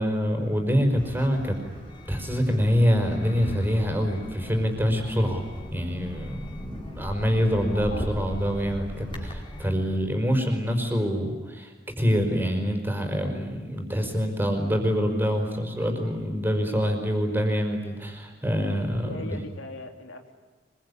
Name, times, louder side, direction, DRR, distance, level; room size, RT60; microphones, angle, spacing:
voice 1, 0.0-1.5 2.1-5.4 5.7-19.3, equal, 10° right, 4 dB, 5.1 m, -25 dB
sound 1, 1.0-9.7, left 1 dB, 25° left, 4.9 m, -38 dB
voice 2, 7.7-8.2 18.9-20.3, left 2 dB, 90° left, 4 dB, 3.4 m, -40 dB
25.0 x 23.0 x 10.0 m, 1.4 s
head